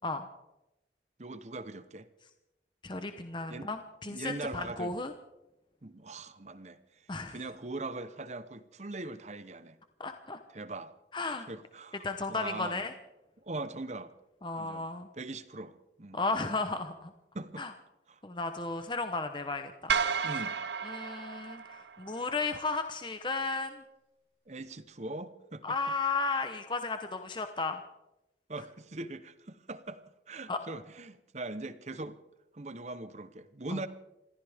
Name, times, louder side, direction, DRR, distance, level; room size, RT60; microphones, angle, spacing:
voice 1, 1.2-2.1 3.5-3.7 4.0-4.9 5.8-9.8 10.5-10.9 11.5-12.9 13.4-14.1 14.6-14.9 15.1-16.2 17.3-17.7 18.1-18.2 20.2-20.6 24.5-25.8 28.5-30.0 30.3-32.2 32.5-33.9, right 2 dB, 40° right, 13 dB, 0.9 m, -41 dB
voice 2, 2.8-5.1 7.1-7.4 10.0-10.4 11.1-11.5 12.0-12.9 14.4-15.1 16.1-17.1 17.6-17.7 18.2-20.0 20.8-23.8 25.6-27.8 30.5-30.6, left 3 dB, 25° left, 7 dB, 0.8 m, -34 dB
sound 1, 19.9-22.3, right 6 dB, 75° right, 0.8 m, -32 dB
28.0 x 14.0 x 3.6 m, 0.93 s
head